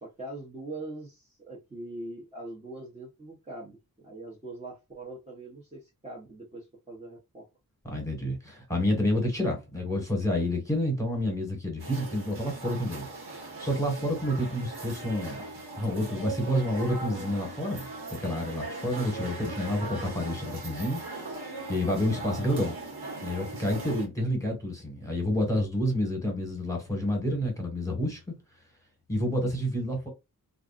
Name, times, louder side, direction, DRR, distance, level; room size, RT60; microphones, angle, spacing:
voice 1, 0.0-7.5 18.9-19.3, right 2 dB, 20° right, 0.9 m, -42 dB
voice 2, 7.8-22.8 23.2-28.3 29.1-30.1, left 1 dB, 10° left, 1.4 m, -29 dB
sound 1, 11.8-24.1, right 3 dB, 90° right, 1.3 m, -39 dB
2.5 x 2.4 x 2.4 m
wide cardioid pair, 95°, 37 cm